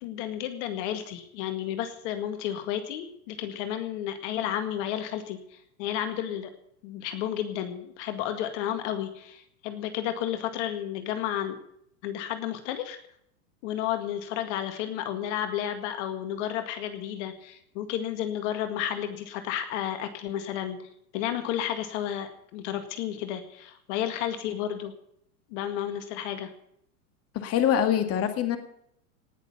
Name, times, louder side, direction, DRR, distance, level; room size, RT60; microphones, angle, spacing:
voice 1, 0.0-6.5 6.8-11.6 12.0-13.0 13.6-24.9 25.5-26.5, left 10 dB, 50° left, 8 dB, 2.0 m, -32 dB
voice 2, 27.3-28.6, left 9 dB, 30° left, 8 dB, 2.0 m, -24 dB
18.5 x 6.7 x 9.6 m, 0.71 s
hypercardioid pair, 125°, 45 cm